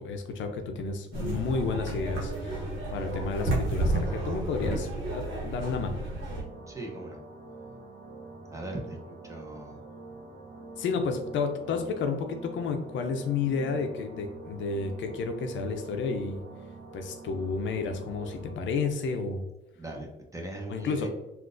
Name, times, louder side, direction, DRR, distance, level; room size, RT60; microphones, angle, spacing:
voice 1, 0.0-6.0 10.8-16.4 16.9-19.4 20.7-21.1, left 4 dB, 70° left, 6 dB, 0.5 m, -31 dB
sound 1, 1.1-6.4, right 1 dB, 75° right, 1.1 m, -31 dB
sound 2, 6.3-18.5, right 3 dB, 55° right, 0.7 m, -46 dB
voice 2, 6.7-7.2 8.5-9.8 19.8-21.1, right 1 dB, 15° right, 0 dB, 0.8 m, -39 dB
3.6 x 2.4 x 2.4 m, 0.94 s
cardioid pair, 90°, 20 cm